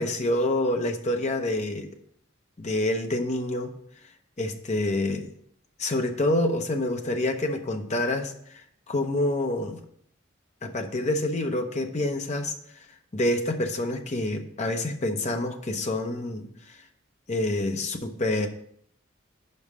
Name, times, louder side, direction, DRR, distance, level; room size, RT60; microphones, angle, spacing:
voice 1, 0.0-1.9 2.6-3.7 4.4-5.3 5.8-9.8 10.6-12.9 13.1-16.8 17.3-18.5, left 1 dB, 35° left, 5 dB, 0.7 m, -27 dB
5.4 x 5.4 x 6.1 m, 0.67 s
head